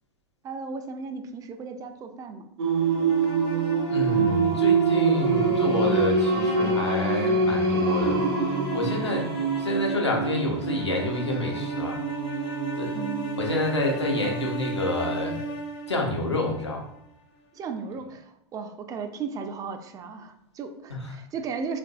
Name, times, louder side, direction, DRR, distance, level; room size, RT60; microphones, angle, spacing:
voice 1, 0.4-2.5 12.9-13.3 17.5-21.8, right 5 dB, 25° right, 6 dB, 0.3 m, -35 dB
Singing, 2.6-14.3, right 4 dB, 65° right, 0.7 m, -25 dB
sound 1, 2.8-16.9, right 3 dB, 55° left, 0.7 m, -34 dB
voice 2, 3.9-8.2 8.7-9.3 9.6-12.0 12.8-13.0 13.3-15.4 15.9-16.8 20.9-21.0, left 1 dB, 90° left, 0 dB, 0.7 m, -28 dB
3.8 x 2.5 x 2.3 m, 0.76 s
figure-of-eight pair, 90°, 14 cm